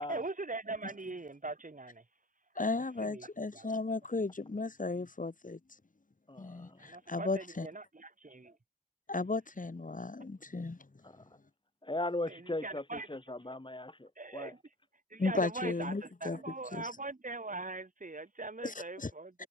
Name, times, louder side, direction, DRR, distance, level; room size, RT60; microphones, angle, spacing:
voice 1, 0.1-2.0 3.0-3.7 6.8-8.6 12.3-13.1 14.2-14.6 15.1-19.5, right 3 dB, 85° right, 5.9 m, -41 dB
voice 2, 2.6-5.6 6.4-7.7 9.1-10.8 15.2-16.4 16.7-16.9 18.6-19.1 19.4-19.5, left 3 dB, 90° left, 2.7 m, -35 dB
voice 3, 6.3-6.9 11.0-11.4 11.8-14.5, left 1 dB, 40° left, 2.9 m, -39 dB
wide cardioid pair, 50°, 13 cm